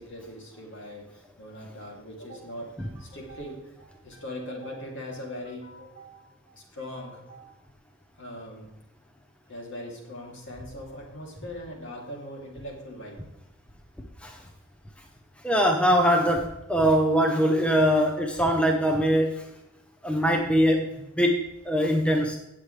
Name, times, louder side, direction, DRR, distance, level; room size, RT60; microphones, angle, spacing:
voice 1, 0.0-7.5 8.2-8.7 9.5-13.3, left 1 dB, 60° left, 0 dB, 3.0 m, -40 dB
voice 2, 15.4-19.4 20.0-20.9 21.1-21.4 21.7-22.4, equal, 5° left, 2 dB, 0.8 m, -22 dB
17.0 x 7.5 x 3.3 m, 0.92 s
head